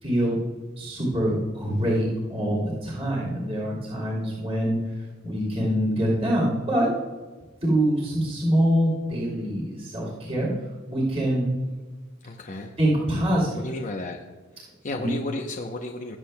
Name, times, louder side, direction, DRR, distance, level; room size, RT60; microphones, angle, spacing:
voice 1, 0.0-0.4 0.8-6.9 7.6-10.5 10.9-11.5 12.8-13.6 14.8-15.1, equal, 30° right, -5 dB, 2.8 m, -25 dB
voice 2, 12.2-12.7 13.6-14.2 14.6-16.2, left 2 dB, 40° left, 1 dB, 0.7 m, -33 dB
19.5 x 7.5 x 2.2 m, 1.3 s
head